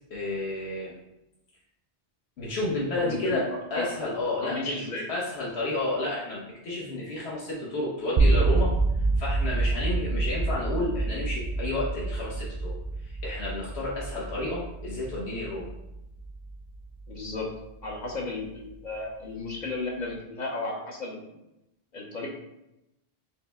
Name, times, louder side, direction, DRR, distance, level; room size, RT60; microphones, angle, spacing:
voice 1, 0.1-1.0 2.4-3.4 3.7-8.7 9.2-12.7 13.0-15.7, left 2 dB, 75° left, -6 dB, 1.1 m, -31 dB
voice 2, 3.0-3.4 3.7-3.9 4.4-5.1 17.1-17.5 17.8-21.2 21.9-22.3, left 3 dB, 50° left, -1 dB, 0.6 m, -34 dB
sound 1, 8.2-18.2, right 3 dB, 55° right, 0.5 m, -28 dB
4.7 x 2.1 x 3.3 m, 0.88 s
omnidirectional pair, 1.1 m